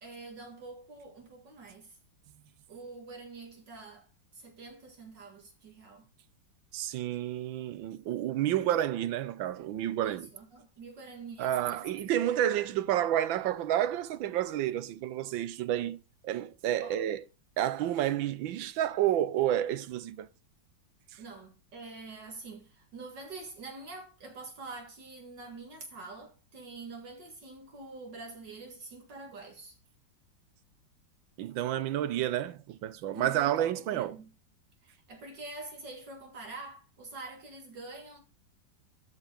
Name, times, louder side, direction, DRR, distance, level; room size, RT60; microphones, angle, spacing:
voice 1, 0.0-2.0 2.7-4.1 4.3-6.0 10.0-11.9 12.3-12.4 16.8-17.1 21.2-29.8 33.1-34.2 34.8-38.2, right 3 dB, 65° right, 2.5 m, -46 dB
voice 2, 6.7-10.3 11.4-17.2 17.6-20.3 21.1-21.2 31.4-34.2, right 12 dB, 85° right, 1.5 m, -30 dB
12.5 x 5.5 x 5.3 m
omnidirectional pair, 2.0 m